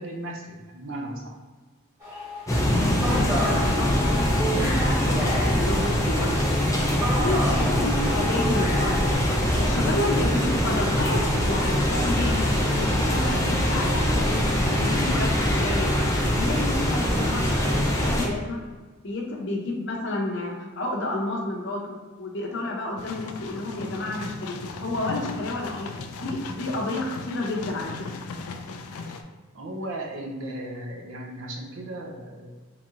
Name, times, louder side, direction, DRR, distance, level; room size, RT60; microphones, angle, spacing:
voice 1, 0.0-1.3 7.2-7.4 29.0-32.5, right 1 dB, 60° right, 1 dB, 0.6 m, -36 dB
sound 1, 2.0-9.2, equal, 15° right, 1.4 m, -32 dB
sound 2, 2.5-18.3, equal, 15° left, 0.4 m, -23 dB
voice 2, 2.6-6.3 7.2-9.1 9.6-15.9 16.3-18.6 19.0-25.9 26.2-28.0, left 2 dB, 55° left, -1 dB, 0.7 m, -30 dB
sound 3, 23.0-29.2, left 4 dB, 85° left, 0.4 m, -37 dB
3.1 x 2.9 x 3.7 m, 1.3 s
head